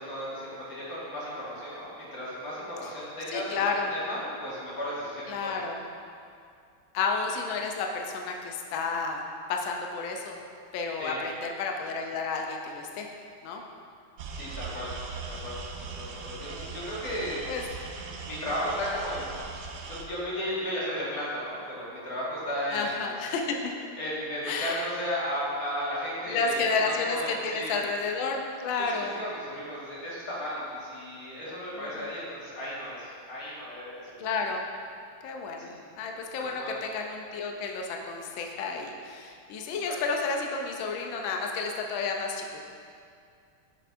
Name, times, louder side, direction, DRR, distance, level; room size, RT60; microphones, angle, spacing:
voice 1, 0.0-5.6 11.0-11.2 14.3-14.9 15.3-15.6 16.0-17.4 18.2-19.4 19.9-22.9 24.0-27.8 28.8-34.2 35.6-35.7 36.4-36.7 39.9-40.0, equal, 45° left, -8 dB, 2.1 m, -35 dB
voice 2, 3.3-3.9 5.3-5.8 6.9-9.2 9.5-10.4 10.7-13.1 13.4-13.6 16.3-16.8 17.5-17.6 22.7-23.7 24.4-24.9 26.3-29.2 31.8-32.1 34.2-34.6 35.2-42.6, left 4 dB, 75° left, 2 dB, 1.3 m, -31 dB
sound 1, 14.2-20.0, right 4 dB, 75° right, 1.2 m, -40 dB
7.8 x 6.5 x 2.6 m, 2.4 s
omnidirectional pair, 2.3 m